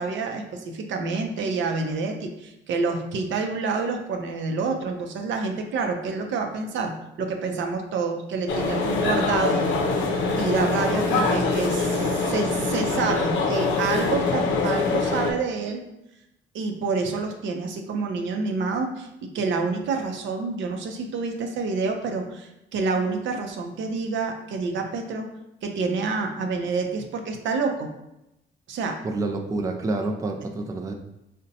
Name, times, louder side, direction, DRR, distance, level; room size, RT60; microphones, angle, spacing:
voice 1, 0.0-9.6 10.3-15.8 16.5-19.1 19.3-25.3 25.6-27.9 28.7-29.0, right 4 dB, 70° right, 4 dB, 0.5 m, -28 dB
sound 1, 8.5-15.3, left 3 dB, 75° left, 0.5 m, -24 dB
voice 2, 29.0-30.9, right 2 dB, 15° right, 3 dB, 0.3 m, -28 dB
3.9 x 2.1 x 2.7 m, 0.88 s
cardioid pair, 90°, 20 cm